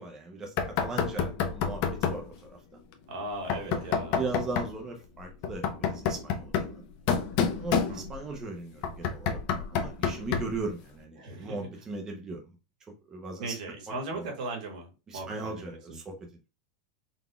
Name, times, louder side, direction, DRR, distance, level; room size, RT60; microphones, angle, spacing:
voice 1, 0.0-2.6 3.5-6.8 7.4-12.4 13.1-13.6 13.9-14.3 15.1-16.1, right 3 dB, 15° right, 2 dB, 0.7 m, -38 dB
Knock, 0.6-2.3 3.5-4.8 5.4-8.3 8.8-10.6, left 7 dB, 40° left, 0.6 m, -29 dB
voice 2, 3.1-4.2 7.7-8.0 11.2-11.7 13.4-16.0, right 2 dB, 75° right, 2 dB, 1.8 m, -38 dB
4.0 x 3.4 x 2.2 m, 0.29 s
supercardioid pair, 170°, 4 cm